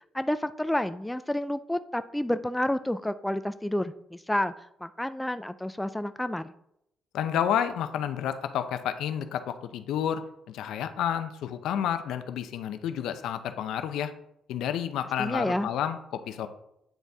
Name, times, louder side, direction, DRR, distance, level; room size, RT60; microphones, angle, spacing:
voice 1, 0.1-4.5 4.8-6.5 15.2-15.7, left 1 dB, 5° left, 11 dB, 0.3 m, -29 dB
voice 2, 7.1-10.2 10.5-14.1 14.5-16.5, left 9 dB, 85° left, 10 dB, 0.6 m, -30 dB
9.1 x 4.0 x 3.5 m, 0.79 s
cardioid pair, 90°, 0 cm